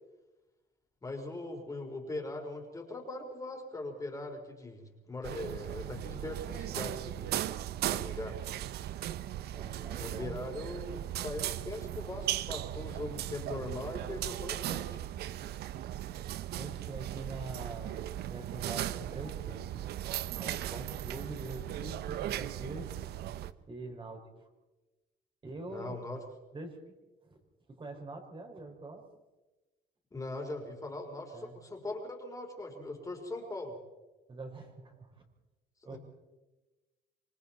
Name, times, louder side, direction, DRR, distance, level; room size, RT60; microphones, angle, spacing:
voice 1, 1.0-7.4 7.9-8.4 10.0-15.0 25.7-26.2 30.1-33.7 35.9-36.0, left 2 dB, 20° left, 2 dB, 4.1 m, -40 dB
sound 1, 5.2-23.5, right 12 dB, 70° right, 0.9 m, -37 dB
voice 2, 9.5-10.4 16.6-19.7 20.4-22.9 23.7-24.5 25.4-26.0 26.5-26.8 27.7-29.0 31.3-31.5 34.3-35.1 35.8-36.0, right 2 dB, 30° right, 3 dB, 5.6 m, -44 dB
26.5 x 24.0 x 4.3 m, 1.1 s
cardioid pair, 110°, 17 cm